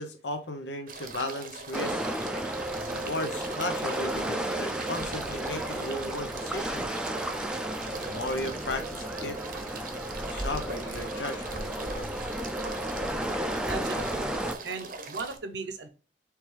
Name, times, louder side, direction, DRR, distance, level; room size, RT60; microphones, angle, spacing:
voice 1, 0.0-2.0 2.8-7.0 8.0-9.4 10.2-12.3, left 2 dB, 85° left, 7 dB, 0.8 m, -36 dB
sound 1, 0.9-15.4, right 4 dB, 50° right, 0.7 m, -42 dB
sound 2, 1.7-14.5, right 1 dB, 5° right, 0.4 m, -33 dB
voice 2, 13.7-14.3 14.6-15.9, right 3 dB, 80° right, 8 dB, 0.7 m, -36 dB
4.6 x 3.3 x 3.2 m, 0.36 s
head